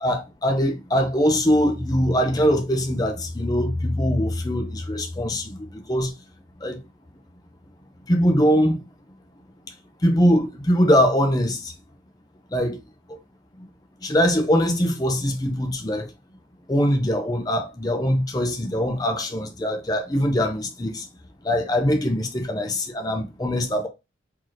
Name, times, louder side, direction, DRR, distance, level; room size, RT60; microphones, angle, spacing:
voice 1, 0.0-6.1 6.6-6.8 8.1-8.8 10.0-11.7 12.5-12.8 14.0-16.1 16.7-21.0 21.4-23.9, equal, 20° left, 0.6 m, -22 dB
3.8 x 3.0 x 3.1 m
head